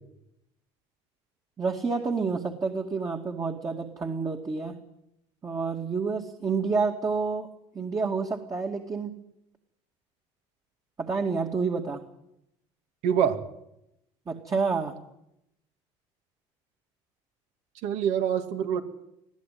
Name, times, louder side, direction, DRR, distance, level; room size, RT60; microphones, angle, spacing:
voice 1, 1.6-4.8 5.4-7.5 7.7-9.2 11.0-12.0 14.3-15.0, right 4 dB, 25° right, 3 dB, 2.3 m, -29 dB
voice 2, 13.0-13.4 17.8-18.8, right 8 dB, 70° right, 8 dB, 2.5 m, -25 dB
21.5 x 15.0 x 9.4 m, 0.81 s
supercardioid pair, 100°, 12 cm